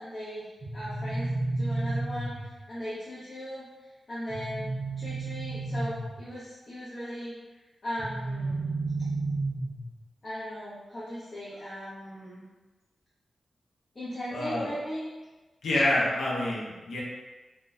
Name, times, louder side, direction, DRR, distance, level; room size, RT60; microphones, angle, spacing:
voice 1, 0.0-3.7 4.1-7.4 7.8-8.6 10.2-12.4 13.9-15.1, equal, 35° left, -11 dB, 0.6 m, -38 dB
sound 1, 0.6-2.6 4.3-6.3 8.0-10.0, right 2 dB, 40° right, 0.6 m, -32 dB
voice 2, 14.3-14.7 15.6-17.0, left 1 dB, 80° left, -5 dB, 0.6 m, -27 dB
2.6 x 2.1 x 2.2 m, 1.2 s
wide cardioid pair, 160°, 0 cm